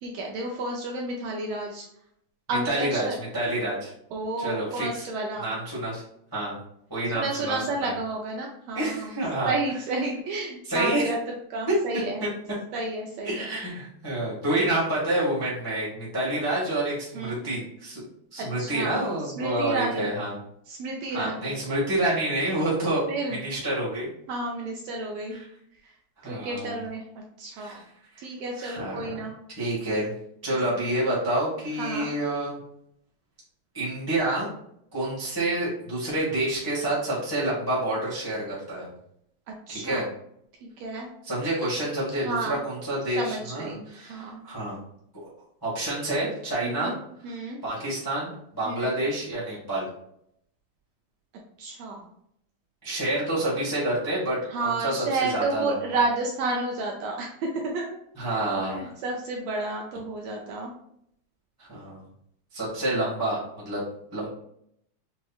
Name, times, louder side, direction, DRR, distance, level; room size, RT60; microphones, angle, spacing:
voice 1, 0.0-1.8 2.5-3.1 4.1-5.5 7.1-9.1 9.4-11.2 11.5-12.2 12.7-13.5 17.1-17.4 18.4-20.1 20.7-21.5 23.1-23.4 24.3-25.4 25.8-25.9 26.2-27.0 27.4-27.8 28.2-29.3 31.8-32.1 39.7-40.1 40.6-41.1 42.2-42.6 43.2-44.4 46.6-47.0 47.2-47.6 48.6-49.0 51.6-52.1 54.5-58.0 58.6-60.7 63.0-63.1, right 2 dB, 80° right, -1 dB, 1.5 m, -31 dB
voice 2, 2.5-3.9 4.4-4.9 5.4-6.0 6.3-6.6 6.9-7.9 8.7-9.5 10.7-11.1 13.2-18.0 18.3-20.3 21.1-23.0 23.3-24.1 25.3-25.4 26.2-26.7 27.6-27.8 28.1-28.2 28.6-29.1 29.6-30.1 30.4-32.6 33.7-34.5 34.9-38.9 39.7-40.0 41.2-44.8 45.6-46.9 47.3-47.4 47.6-49.9 52.8-55.7 58.2-58.9 61.6-62.0 62.5-63.8 64.1-64.3, right 1 dB, 25° left, -8 dB, 0.4 m, -28 dB
6.1 x 2.9 x 2.3 m, 0.73 s
omnidirectional pair, 3.5 m